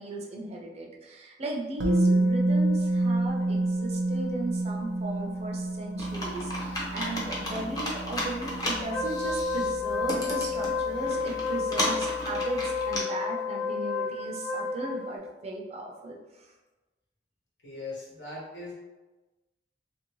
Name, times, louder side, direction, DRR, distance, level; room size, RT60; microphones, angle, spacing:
voice 1, 0.0-16.5, right 1 dB, 35° right, -1 dB, 0.5 m, -36 dB
Musical instrument, 1.8-9.7 10.0-10.1, right 2 dB, 90° right, 0.5 m, -28 dB
Computer keyboard, 6.0-13.0, left 1 dB, 20° left, 0.6 m, -34 dB
Wind instrument woodwind instrument, 8.9-15.2, left 4 dB, 65° left, 0.9 m, -31 dB
voice 2, 17.6-18.7, left 2 dB, 85° left, -5 dB, 1.2 m, -39 dB
2.9 x 2.6 x 3.0 m, 1.2 s
head